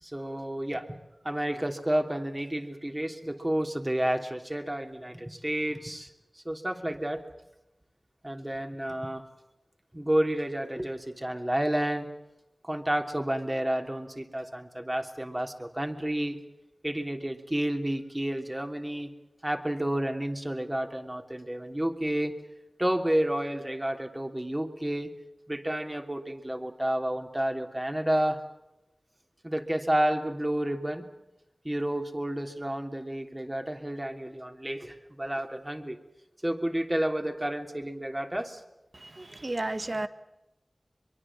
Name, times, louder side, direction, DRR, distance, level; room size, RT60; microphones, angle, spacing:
voice 1, 0.0-1.0 1.2-6.1 6.4-7.2 8.2-9.2 9.9-12.1 12.6-16.4 16.8-19.1 19.4-22.3 22.8-25.1 25.5-28.4 29.4-31.1 31.6-36.0 36.4-38.6, right 1 dB, 20° right, 4 dB, 3.1 m, -30 dB
voice 2, 38.9-40.1, right 2 dB, 50° right, 10 dB, 1.6 m, -33 dB
23.5 x 23.5 x 7.4 m, 0.94 s
wide cardioid pair, 50°, 0 cm